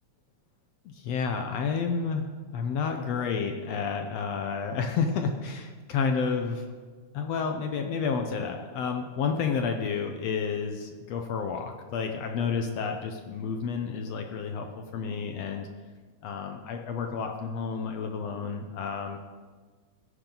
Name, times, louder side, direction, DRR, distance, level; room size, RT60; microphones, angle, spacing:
voice 1, 0.8-6.7 7.1-15.7 16.2-19.2, left 5 dB, 70° left, 4 dB, 1.7 m, -30 dB
21.0 x 9.1 x 3.9 m, 1.5 s
omnidirectional pair, 3.7 m